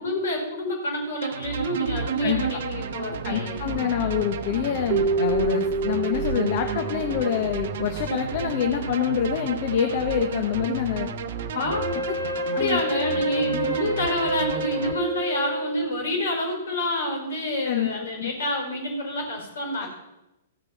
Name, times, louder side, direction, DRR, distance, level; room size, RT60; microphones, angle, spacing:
voice 1, 0.0-3.6 11.5-11.8 12.3-19.9, left 1 dB, 65° left, 2 dB, 4.8 m, -28 dB
sound 1, 1.2-14.9, right 6 dB, 55° right, 0.9 m, -32 dB
voice 2, 3.2-11.1 11.9-12.0 12.6-12.8 13.5-13.8 17.6-17.9 18.2-18.3 19.8-19.9, left 9 dB, 45° left, 5 dB, 1.1 m, -26 dB
Keyboard (musical), 4.9-8.1, right 4 dB, 35° right, 1.4 m, -28 dB
Wind instrument woodwind instrument, 11.7-16.0, equal, 90° left, 3.4 m, -29 dB
15.0 x 6.6 x 5.8 m, 0.95 s
figure-of-eight pair, 115°, 0 cm